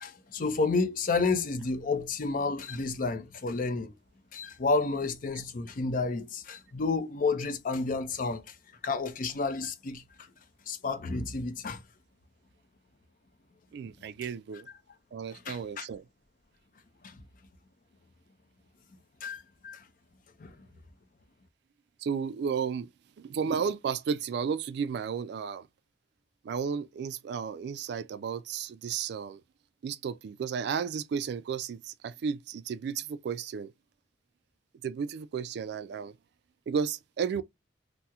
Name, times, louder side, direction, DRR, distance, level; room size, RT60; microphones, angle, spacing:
voice 1, 0.0-3.9 4.3-8.5 8.8-10.0 10.7-11.8 15.5-15.9 17.0-17.2 19.2-19.8 20.4-20.5, left 3 dB, 50° left, 0.5 m, -30 dB
voice 2, 13.7-14.7 15.1-16.1 22.0-22.9 23.2-25.7 26.4-29.4 29.8-33.7 34.8-36.2 36.7-37.4, right 6 dB, 65° right, 0.3 m, -33 dB
3.4 x 2.0 x 2.8 m
head